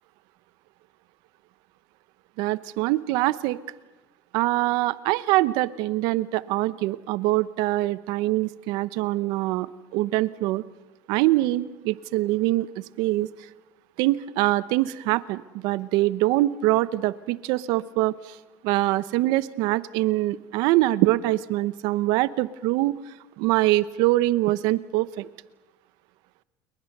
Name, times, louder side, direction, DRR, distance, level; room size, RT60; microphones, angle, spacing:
voice 1, 2.4-3.6 4.3-10.6 11.1-12.7 13.0-13.3 14.0-18.4 18.6-23.0 23.4-25.3, right 17 dB, 75° right, 17 dB, 0.9 m, -24 dB
29.0 x 22.0 x 6.7 m, 1.1 s
cardioid pair, 130°, 7 cm